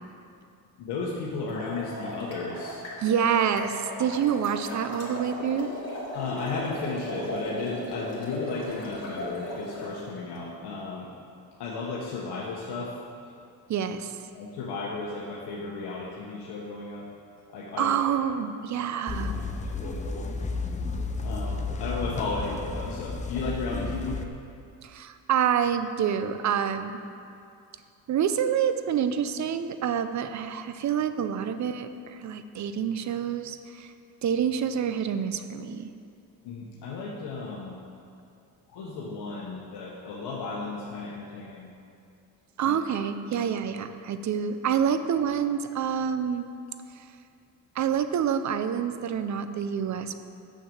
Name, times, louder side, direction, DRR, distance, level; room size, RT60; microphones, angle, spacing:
voice 1, 0.8-2.8 6.1-11.1 11.6-12.9 14.3-17.1 17.5-17.9 19.3-20.5 21.2-24.2 36.4-37.7 38.7-41.7 42.6-42.8, left 3 dB, 75° left, -4 dB, 1.2 m, -34 dB
sound 1, 1.6-9.9, left 1 dB, 40° left, 2.2 m, -37 dB
voice 2, 3.0-3.7 4.0-5.7 13.7-14.2 17.8-19.3 24.8-27.0 28.1-33.9 34.2-35.9 42.6-46.4 47.8-50.1, right 8 dB, 45° right, 10 dB, 0.6 m, -27 dB
sound 2, 19.1-24.2, left 3 dB, 20° left, 0.5 m, -32 dB
6.5 x 6.5 x 7.1 m, 2.5 s
cardioid pair, 100°, 40 cm